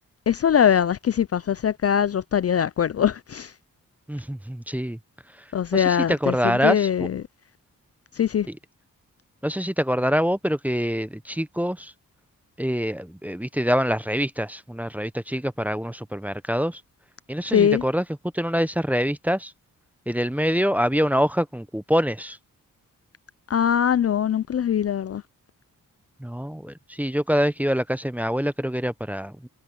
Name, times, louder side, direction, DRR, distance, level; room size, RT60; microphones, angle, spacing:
voice 1, 0.3-3.5 5.5-7.2 8.1-8.5 17.5-17.8 23.5-25.2, left 8 dB, 45° left, 0.4 m, -22 dB
voice 2, 4.1-5.0 5.3-7.1 8.5-8.6 9.4-11.9 12.6-16.8 17.3-18.0 18.3-19.5 20.1-22.4 26.2-29.5, equal, 5° right, 0.7 m, -25 dB
wide cardioid pair, 90°, 34 cm